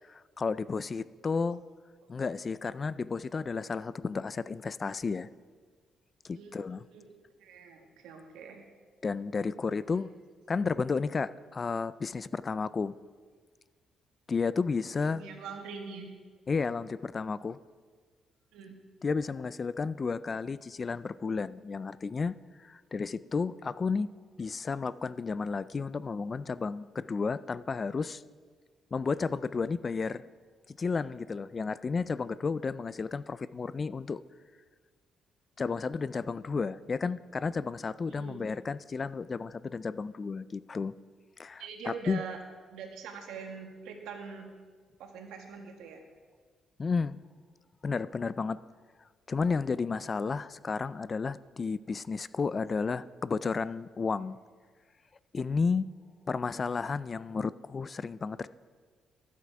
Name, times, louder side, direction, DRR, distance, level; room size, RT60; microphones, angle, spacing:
voice 1, 0.4-1.6 2.1-5.3 6.2-6.8 9.0-10.1 10.5-12.9 14.3-15.2 16.5-17.6 19.0-24.1 24.4-28.2 28.9-30.2 30.7-34.2 35.6-40.9 41.4-42.2 46.8-47.2 47.8-48.6 49.3-54.4 55.3-55.9 56.3-58.5, left 4 dB, 35° left, 17 dB, 0.3 m, -32 dB
voice 2, 7.4-8.6 15.0-16.1 18.5-18.7 38.1-38.4 41.6-42.4 42.7-44.5 45.0-46.0, right 5 dB, 90° right, 3 dB, 1.5 m, -43 dB
13.5 x 8.3 x 4.7 m, 1.5 s
cardioid pair, 90°, 0 cm